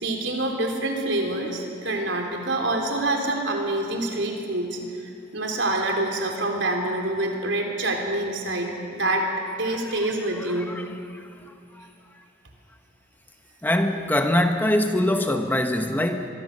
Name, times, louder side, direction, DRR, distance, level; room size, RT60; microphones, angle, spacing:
voice 1, 0.0-9.3 9.6-10.7, right 2 dB, 70° right, 1 dB, 3.8 m, -26 dB
voice 2, 13.6-16.3, left 1 dB, 10° left, 5 dB, 1.0 m, -22 dB
24.5 x 22.5 x 6.8 m, 2.4 s
head